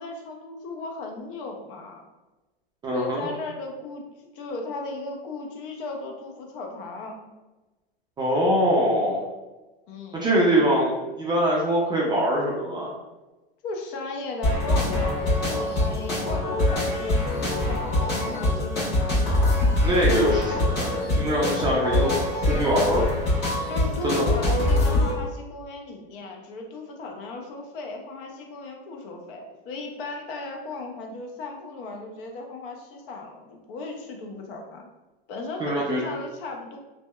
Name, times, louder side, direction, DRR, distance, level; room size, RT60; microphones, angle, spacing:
voice 1, 0.0-2.0 2.9-4.0 4.3-7.2 9.9-10.3 13.6-19.3 23.7-34.9 35.3-36.8, left 2 dB, 60° left, 2 dB, 0.6 m, -36 dB
voice 2, 2.8-3.2 8.2-9.2 10.1-12.9 19.8-22.1 22.5-23.0 24.0-24.2 35.6-36.0, equal, 15° right, -4 dB, 0.4 m, -23 dB
sound 1, 14.4-25.1, left 1 dB, 45° left, 1.3 m, -24 dB
2.7 x 2.1 x 2.2 m, 1.1 s
hypercardioid pair, 110°, 30 cm